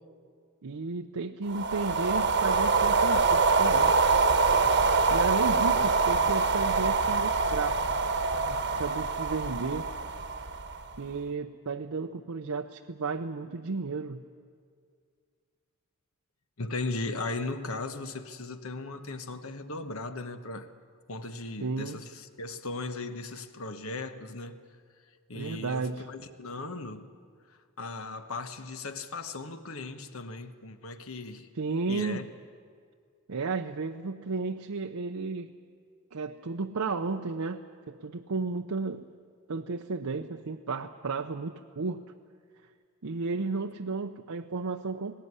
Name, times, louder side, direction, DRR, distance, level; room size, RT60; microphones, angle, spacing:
voice 1, 0.6-3.9 5.1-7.8 8.5-9.9 11.0-14.2 21.6-22.0 25.3-26.1 31.5-32.2 33.3-35.5 36.1-39.0 39.5-42.0 43.0-45.1, right 4 dB, 75° right, 0.7 m, -33 dB
sound 1, 1.5-11.0, right 4 dB, 55° right, 1.2 m, -25 dB
voice 2, 16.6-20.7 21.1-24.6 25.3-27.1 27.5-31.5 31.9-32.2, left 3 dB, 70° left, 1.3 m, -37 dB
19.0 x 18.0 x 9.7 m
head